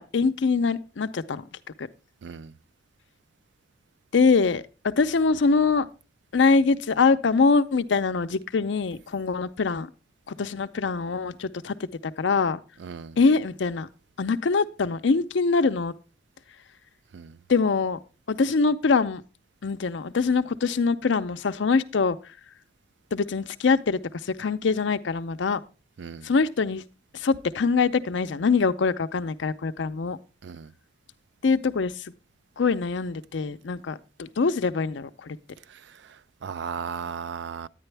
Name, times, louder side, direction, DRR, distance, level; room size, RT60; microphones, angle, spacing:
voice 1, 0.0-1.4 1.8-1.9 4.1-5.9 6.3-9.9 10.3-12.6 13.2-13.9 14.2-15.9 17.5-18.0 18.3-19.2 19.6-22.2 23.1-25.6 26.2-26.8 27.1-30.2 31.4-32.1 32.6-35.4, left 4 dB, 75° left, 0.5 m, -24 dB
voice 2, 2.2-2.5 12.8-13.2 17.1-17.4 26.0-26.3 30.4-30.7 35.7-37.7, right 6 dB, 70° right, 0.4 m, -36 dB
9.8 x 9.8 x 3.3 m
head